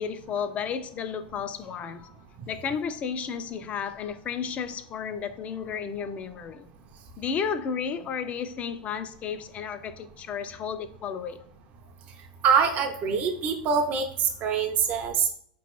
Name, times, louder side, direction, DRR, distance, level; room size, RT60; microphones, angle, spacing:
voice 1, 0.0-2.1 2.5-6.7 7.2-11.4, left 6 dB, 30° left, 0.4 m, -33 dB
voice 2, 12.4-14.1 14.4-15.3, right 6 dB, 40° right, 0.5 m, -24 dB
4.3 x 3.0 x 3.0 m
hypercardioid pair, 120°, 5 cm